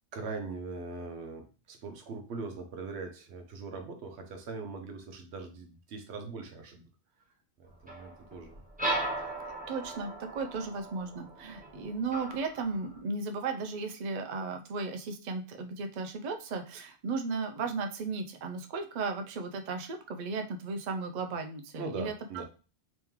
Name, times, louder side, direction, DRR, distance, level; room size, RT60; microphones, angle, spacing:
voice 1, 0.1-6.8 7.6-8.6 9.2-9.5 21.8-22.4, right 4 dB, 80° right, 5 dB, 1.0 m, -41 dB
sound 1, 7.9-13.0, right 1 dB, 10° right, 0.6 m, -37 dB
voice 2, 9.7-22.4, right 4 dB, 55° right, 5 dB, 0.5 m, -35 dB
3.6 x 3.1 x 3.0 m, 0.35 s
omnidirectional pair, 1.1 m